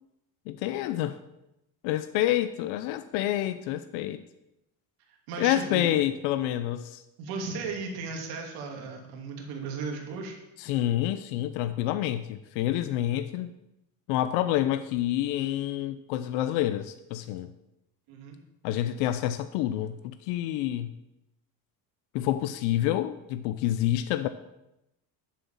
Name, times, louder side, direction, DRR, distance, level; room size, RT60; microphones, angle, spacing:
voice 1, 0.5-1.2 1.8-4.2 5.4-7.0 10.6-13.5 14.1-17.5 18.6-20.9 22.1-24.3, left 13 dB, 75° left, 11 dB, 0.8 m, -28 dB
voice 2, 5.3-6.0 7.2-10.4 18.1-18.4, right 4 dB, 60° right, 1 dB, 2.8 m, -36 dB
11.0 x 7.5 x 7.2 m, 0.88 s
cardioid pair, 175°, 42 cm